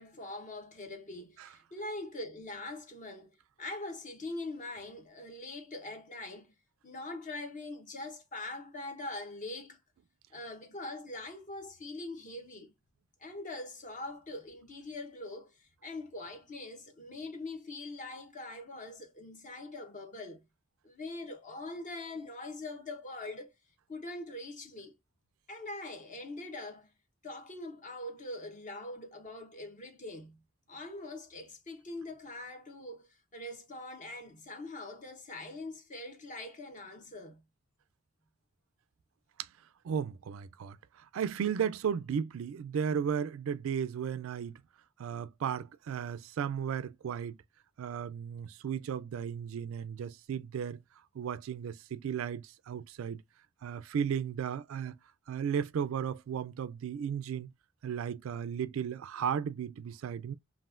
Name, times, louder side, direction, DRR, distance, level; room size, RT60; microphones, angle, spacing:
voice 1, 0.0-6.5 6.8-9.8 10.3-12.7 13.2-20.5 20.8-23.5 23.9-24.9 25.5-26.9 27.2-30.4 30.7-37.4, left 2 dB, 40° left, 1.0 m, -43 dB
voice 2, 39.8-44.6 45.0-47.4 47.8-50.8 51.1-53.2 53.6-55.0 55.3-57.5 57.8-60.3, right 7 dB, 70° right, 0.3 m, -35 dB
5.4 x 2.5 x 2.4 m
head